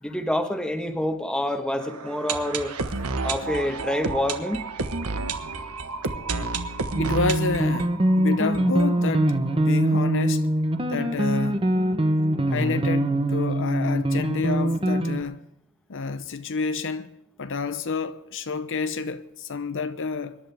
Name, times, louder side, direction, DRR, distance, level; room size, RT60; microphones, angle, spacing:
voice 1, 0.0-2.7 3.2-4.6, left 1 dB, 5° left, 1.4 m, -27 dB
sound 1, 1.8-9.6 9.8-9.9 10.1-10.2 10.7-10.8, right 4 dB, 85° right, 1.3 m, -31 dB
sound 2, 6.9-15.2, right 1 dB, 25° right, 1.0 m, -23 dB
voice 2, 7.0-10.5 10.9-11.7 12.5-15.4 15.9-17.1 17.4-20.4, left 4 dB, 60° left, 0.7 m, -29 dB
25.0 x 11.5 x 3.5 m
head